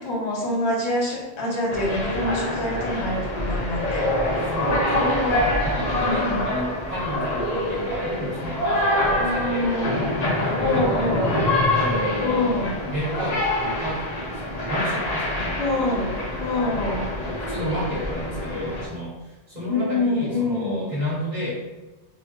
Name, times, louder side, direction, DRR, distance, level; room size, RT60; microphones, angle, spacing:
voice 1, 0.0-4.1 6.0-6.5 9.2-10.1 10.6-11.4 12.2-12.8 15.6-16.1 16.4-17.1 19.7-20.9, left 2 dB, 85° left, -2 dB, 1.1 m, -25 dB
sound 1, 1.7-18.9, left 1 dB, 45° left, 0.7 m, -25 dB
voice 2, 4.5-9.7 10.2-11.1 11.7-16.2 17.5-21.5, equal, 40° right, -8 dB, 1.6 m, -31 dB
5.2 x 2.1 x 2.8 m, 1.1 s
omnidirectional pair, 1.1 m